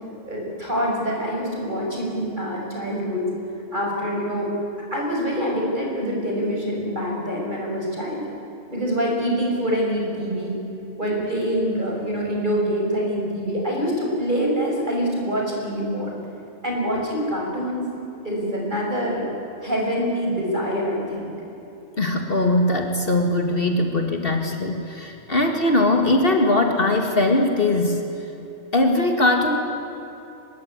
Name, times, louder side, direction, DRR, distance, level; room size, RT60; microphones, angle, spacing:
voice 1, 0.2-3.3 3.7-4.5 4.9-8.2 8.7-10.6 11.0-16.1 16.6-17.9 18.2-19.3 19.6-21.3, equal, 35° right, -1 dB, 6.4 m, -25 dB
voice 2, 22.0-28.0 28.7-29.6, left 2 dB, 45° left, 3 dB, 2.2 m, -20 dB
24.0 x 21.5 x 9.6 m, 3.0 s
omnidirectional pair, 1.4 m